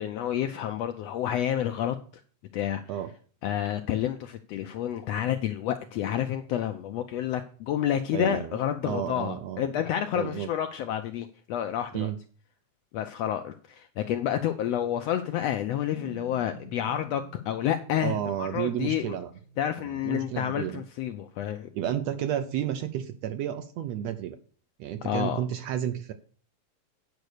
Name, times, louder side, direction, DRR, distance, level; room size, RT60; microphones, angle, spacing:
voice 1, 0.0-2.0 2.5-2.8 3.4-12.1 12.9-19.2 19.6-21.7 25.0-25.4, left 10 dB, 80° left, 1.5 m, -29 dB
voice 2, 8.1-8.5 8.8-9.6 10.1-10.5 11.9-12.2 18.0-19.3 20.0-20.8 21.7-24.4 24.8-26.1, right 10 dB, 75° right, 1.6 m, -31 dB
sound 1, 15.9-20.9, right 3 dB, 60° left, 1.3 m, -50 dB
9.3 x 5.3 x 6.5 m
omnidirectional pair, 3.5 m